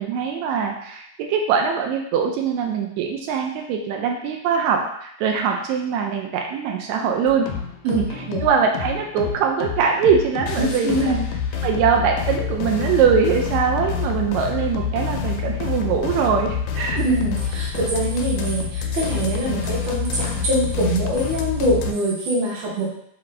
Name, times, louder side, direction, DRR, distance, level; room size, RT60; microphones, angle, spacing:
voice 1, 0.0-7.5 7.8-11.2 11.6-17.0, right 6 dB, 80° right, 2 dB, 1.8 m, -22 dB
sound 1, 7.3-21.9, left 7 dB, 80° left, 1.9 m, -27 dB
voice 2, 10.6-11.2 17.0-22.9, right 1 dB, 50° right, -5 dB, 1.5 m, -23 dB
5.8 x 2.5 x 3.3 m, 0.71 s
omnidirectional pair, 3.4 m